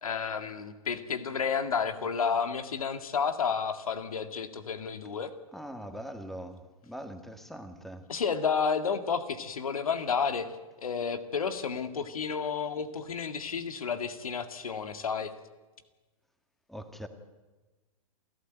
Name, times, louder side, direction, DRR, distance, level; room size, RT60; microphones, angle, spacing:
voice 1, 0.0-5.3 8.1-10.5 10.8-15.3, left 6 dB, 85° left, 9 dB, 2.0 m, -31 dB
voice 2, 5.5-8.1 16.7-17.1, equal, ahead, 7 dB, 2.0 m, -42 dB
28.0 x 14.5 x 9.1 m, 1.2 s
hypercardioid pair, 115°, 18 cm